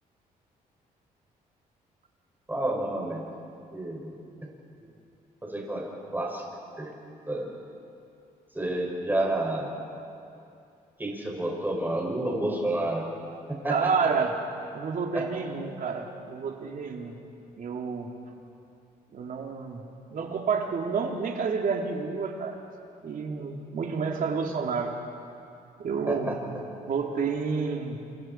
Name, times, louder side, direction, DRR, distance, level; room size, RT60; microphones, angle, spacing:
voice 1, 2.5-3.2 3.7-4.1 4.4-4.5 5.4-6.4 6.8-6.9 7.3-7.5 8.5-9.7 11.0-13.0 13.5-14.1 15.1-15.3 26.1-26.4, right 1 dB, 10° right, -2 dB, 6.3 m, -30 dB
voice 2, 13.7-14.3 14.7-17.2 17.6-18.1 19.1-19.8 20.1-22.6 23.0-24.9 25.8-26.5 26.9-28.0, right 5 dB, 60° right, 2 dB, 2.8 m, -29 dB
27.5 x 27.5 x 4.5 m, 2.6 s
cardioid pair, 75°, 16 cm